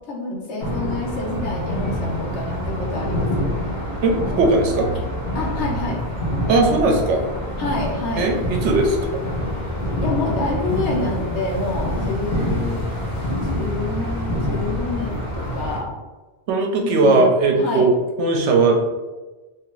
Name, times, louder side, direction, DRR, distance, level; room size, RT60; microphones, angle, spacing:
voice 1, 0.1-3.5 5.3-6.0 7.6-8.3 10.0-12.8 13.4-15.9 16.8-17.3 17.5-17.9, left 2 dB, 70° left, -2 dB, 1.1 m, -27 dB
sound 1, 0.6-15.8, equal, 45° left, 0.8 m, -26 dB
voice 2, 4.0-4.9 6.5-7.2 8.2-9.0 16.5-18.9, right 3 dB, 80° right, 2 dB, 0.9 m, -18 dB
2.8 x 2.5 x 3.0 m, 1.2 s
omnidirectional pair, 1.2 m